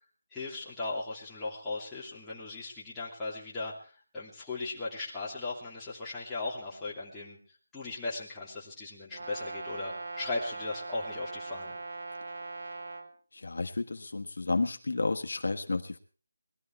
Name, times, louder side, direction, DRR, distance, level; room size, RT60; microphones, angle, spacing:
voice 1, 0.3-7.4 7.7-11.8, left 3 dB, 5° left, -7 dB, 2.7 m, -37 dB
Brass instrument, 9.1-13.1, right 3 dB, 50° right, 2.3 m, -40 dB
voice 2, 13.3-16.0, left 3 dB, 65° left, 5 dB, 1.4 m, -31 dB
21.0 x 13.0 x 4.5 m, 0.40 s
figure-of-eight pair, 175°, 0 cm